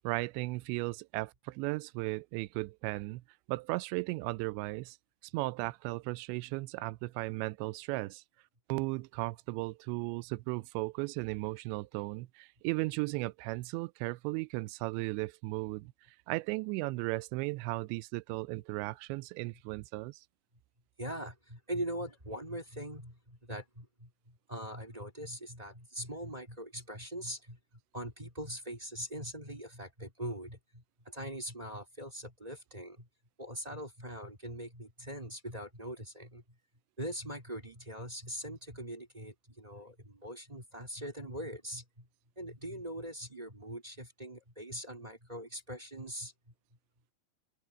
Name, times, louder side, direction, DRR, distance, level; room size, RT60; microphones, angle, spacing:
voice 1, 0.0-3.2 3.5-5.0 5.3-8.2 8.7-15.9 16.3-20.2, right 22 dB, 90° right, 2.9 m, -36 dB
voice 2, 21.0-27.6 27.9-33.1 33.4-36.4 37.0-42.1 42.4-46.3, equal, 10° right, 2.9 m, -42 dB
open air
omnidirectional pair, 5.0 m